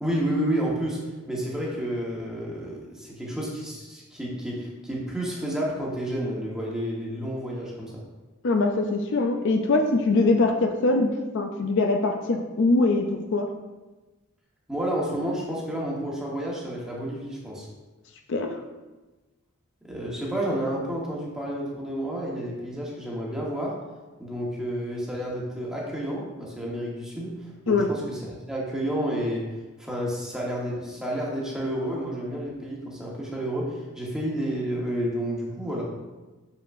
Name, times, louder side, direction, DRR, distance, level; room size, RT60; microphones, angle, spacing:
voice 1, 0.0-1.0 1.3-8.0 14.7-17.7 19.8-23.7 24.2-29.5 29.8-35.8, right 1 dB, 5° right, -4 dB, 1.2 m, -30 dB
voice 2, 8.4-11.1 11.3-13.5 18.3-18.6 27.7-27.9, left 3 dB, 55° left, 4 dB, 0.5 m, -22 dB
6.7 x 5.5 x 2.6 m, 1.2 s
head